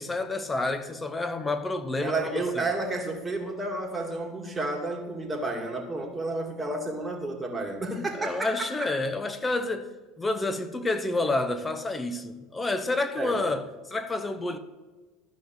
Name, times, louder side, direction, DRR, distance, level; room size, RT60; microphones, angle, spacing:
voice 1, 0.0-2.6 8.2-9.9 10.2-14.6, left 2 dB, 20° left, 1.1 m, -29 dB
voice 2, 2.0-8.9 13.2-13.4, right 2 dB, 15° right, 2.4 m, -31 dB
13.5 x 5.8 x 6.2 m
hypercardioid pair, 90°, 0 cm